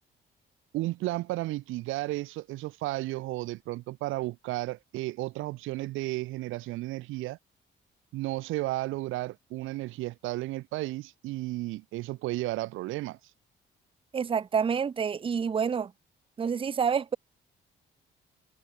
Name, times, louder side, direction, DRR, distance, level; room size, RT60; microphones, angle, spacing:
voice 1, 0.7-7.4 8.1-13.2, right 18 dB, 85° right, 0.5 m, -33 dB
voice 2, 14.1-15.9 16.4-17.2, right 6 dB, 25° right, 0.5 m, -28 dB
cardioid pair, 90°, 20 cm